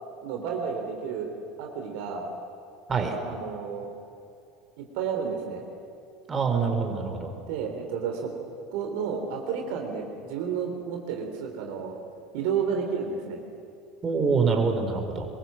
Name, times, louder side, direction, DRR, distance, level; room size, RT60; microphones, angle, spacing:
voice 1, 0.2-1.3 1.6-2.3 3.0-3.9 4.8-5.6 7.5-8.3 8.7-12.0 12.3-13.4, right 6 dB, 60° right, 2 dB, 3.6 m, -31 dB
voice 2, 6.3-7.3 14.0-15.3, right 5 dB, 25° right, 4 dB, 4.2 m, -25 dB
26.0 x 22.0 x 7.6 m, 2.6 s
figure-of-eight pair, 75°, 0 cm